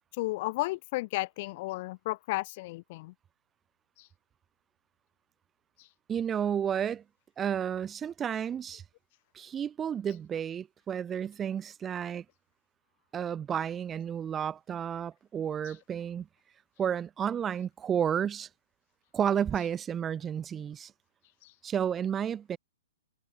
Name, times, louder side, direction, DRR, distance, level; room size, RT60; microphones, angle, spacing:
voice 1, 0.2-3.1 4.0-4.1 5.8-5.9 15.6-15.7 21.4-21.5, left 21 dB, 45° left, 5.1 m, -33 dB
voice 2, 6.1-7.0 7.4-8.8 9.3-12.2 13.1-16.3 16.8-18.5 19.1-20.9 21.6-22.6, right 8 dB, 20° right, 2.8 m, -31 dB
figure-of-eight pair, 120°, 0 cm